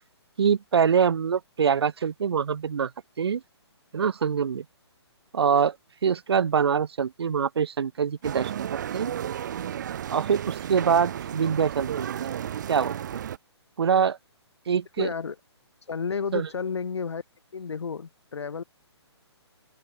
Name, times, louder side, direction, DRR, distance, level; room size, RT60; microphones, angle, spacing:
voice 1, 0.4-2.9 3.2-3.4 3.9-4.6 5.3-5.8 6.0-8.7 8.9-9.1 10.1-12.3 12.7-13.2 13.8-14.2 14.7-15.1 16.3-16.5, right 7 dB, 65° right, 1.9 m, -24 dB
sound 1, 8.2-13.4, right 10 dB, 40° right, 1.5 m, -33 dB
voice 2, 15.0-15.4 15.9-17.2 17.5-18.6, left 5 dB, 75° left, 5.9 m, -31 dB
hypercardioid pair, 165°, 15 cm